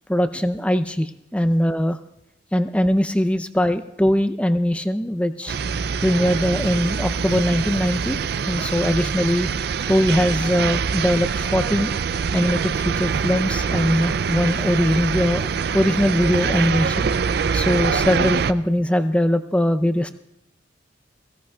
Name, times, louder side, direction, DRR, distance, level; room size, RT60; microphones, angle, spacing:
voice 1, 0.1-2.0 2.5-5.6 6.0-8.2 8.5-9.5 9.9-11.9 12.3-17.1 17.5-20.1, equal, 5° left, 10 dB, 0.5 m, -21 dB
sound 1, 5.5-18.5, right 6 dB, 55° right, 0.4 m, -24 dB
22.5 x 16.5 x 2.3 m, 0.90 s
head